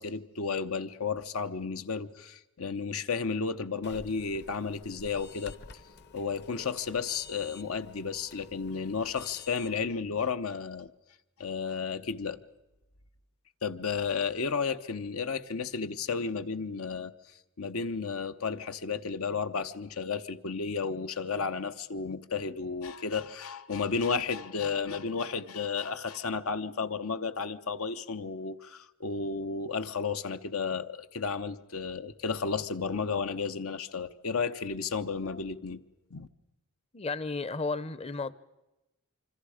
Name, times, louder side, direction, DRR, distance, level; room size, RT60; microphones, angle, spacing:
voice 1, 0.0-5.5 6.1-10.9 11.4-12.4 13.6-17.1 17.6-35.8 36.1-36.3, left 5 dB, 80° left, 1.0 m, -33 dB
sound 1, 3.8-9.9, left 4 dB, 50° left, 1.0 m, -50 dB
voice 2, 36.9-38.3, left 3 dB, 30° left, 0.7 m, -33 dB
26.5 x 25.5 x 5.0 m
head